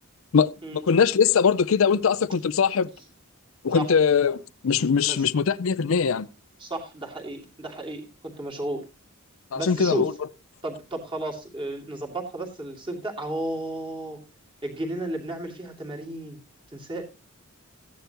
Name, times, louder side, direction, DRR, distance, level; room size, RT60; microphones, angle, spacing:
voice 1, 0.3-2.9 3.6-6.3 9.5-10.1, left 6 dB, 70° left, 0.5 m, -21 dB
voice 2, 6.6-8.8 9.5-10.1 10.6-14.2 14.6-16.4 16.7-17.0, right 1 dB, 25° right, 2.6 m, -33 dB
15.0 x 10.5 x 2.9 m
head